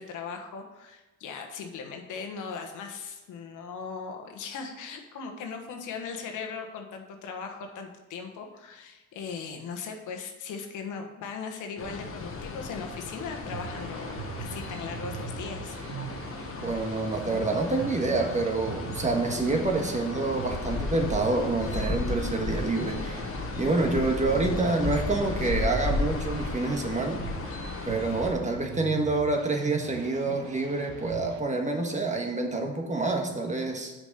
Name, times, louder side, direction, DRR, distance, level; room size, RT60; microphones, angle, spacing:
voice 1, 0.0-16.3, left 5 dB, 85° left, 4 dB, 1.3 m, -39 dB
sound 1, 11.8-28.3, left 3 dB, 45° left, 1.2 m, -34 dB
sound 2, 13.5-31.4, right 7 dB, 75° right, 0.7 m, -42 dB
voice 2, 16.6-23.2 23.6-27.2 27.8-33.9, right 2 dB, 25° right, 3 dB, 1.5 m, -27 dB
6.7 x 5.0 x 6.7 m, 1.1 s
cardioid pair, 90°, 30 cm